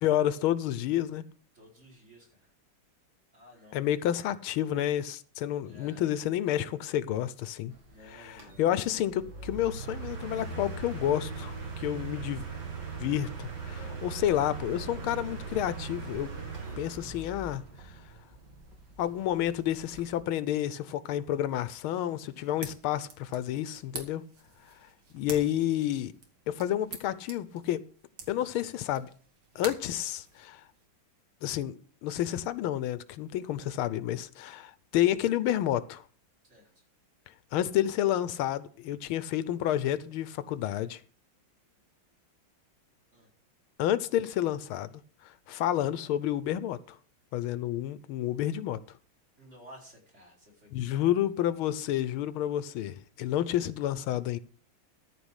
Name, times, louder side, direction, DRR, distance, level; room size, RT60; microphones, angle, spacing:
voice 1, 0.0-1.2 3.7-7.7 8.1-12.5 13.0-16.3 16.8-17.6 19.0-24.2 25.1-26.1 26.5-27.8 28.3-29.1 29.5-30.6 31.4-31.8 32.0-36.0 37.5-41.0 43.8-44.9 45.2-47.0 47.3-48.8 50.7-54.4, left 12 dB, 85° left, 1.5 m, -30 dB
voice 2, 1.5-2.5 3.3-4.0 5.6-6.2 7.9-9.0 13.7-14.2 29.5-29.7 36.5-36.8 43.1-43.3 49.4-51.2, left 1 dB, 30° right, 4.9 m, -54 dB
sound 1, 7.7-20.2, right 4 dB, 55° right, 2.9 m, -40 dB
sound 2, 22.3-30.8, right 5 dB, 80° right, 2.7 m, -47 dB
13.5 x 4.8 x 8.0 m
omnidirectional pair, 2.3 m